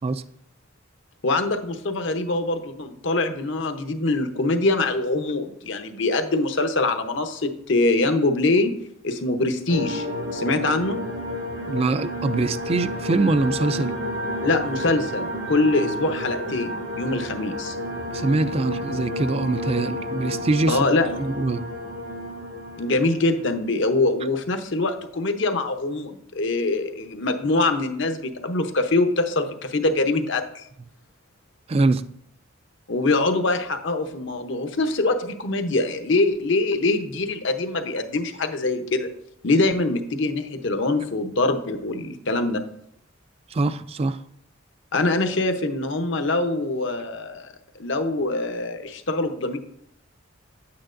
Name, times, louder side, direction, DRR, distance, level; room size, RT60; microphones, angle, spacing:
voice 1, 1.2-8.7 9.0-10.1 10.3-11.0 14.4-17.8 20.7-21.1 22.8-30.6 32.9-39.1 39.4-42.6 44.9-49.6, left 2 dB, 65° left, 7 dB, 0.8 m, -24 dB
sound 1, 9.7-23.7, left 1 dB, 80° right, 2.1 m, -31 dB
voice 2, 11.6-13.9 18.1-20.8 21.2-21.7 31.7-32.0 43.5-44.2, right 3 dB, 30° right, 13 dB, 0.3 m, -23 dB
9.9 x 8.7 x 2.6 m, 0.71 s
head